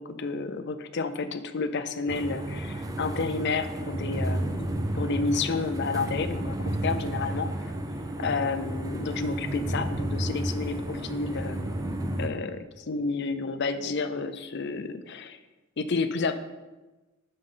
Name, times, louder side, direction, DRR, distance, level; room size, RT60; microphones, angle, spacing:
voice 1, 0.0-7.5 8.2-11.7 12.2-15.4 15.8-16.4, left 4 dB, 55° left, 10 dB, 0.6 m, -30 dB
sound 1, 2.1-12.3, right 1 dB, 15° right, 0.6 m, -32 dB
9.4 x 6.5 x 3.9 m, 1.2 s
head